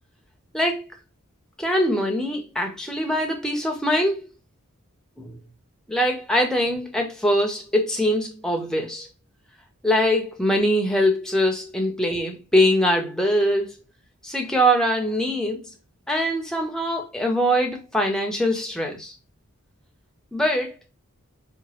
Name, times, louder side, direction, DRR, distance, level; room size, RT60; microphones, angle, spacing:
voice 1, 0.5-0.9 1.6-4.2 5.2-5.3 5.9-9.1 9.8-13.7 14.2-15.7 16.1-19.1 20.3-20.7, equal, 5° left, 0.5 m, -22 dB
2.9 x 2.3 x 2.8 m
head